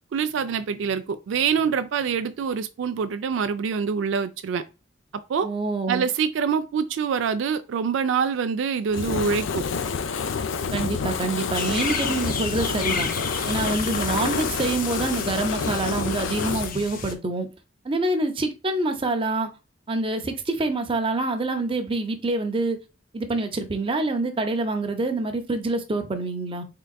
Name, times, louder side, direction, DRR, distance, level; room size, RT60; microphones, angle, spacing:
voice 1, 0.1-4.6 5.3-5.5 5.9-9.6, right 6 dB, 75° right, 0.3 m, -25 dB
voice 2, 5.4-6.0 10.7-13.1 13.4-17.5 17.8-19.5 19.9-22.8 23.1-26.7, right 2 dB, 30° right, 0.6 m, -26 dB
Fire, 8.9-16.7, left 5 dB, 90° left, 0.4 m, -28 dB
sound 1, 11.5-17.1, left 5 dB, 45° left, 0.6 m, -32 dB
3.8 x 3.4 x 2.2 m
head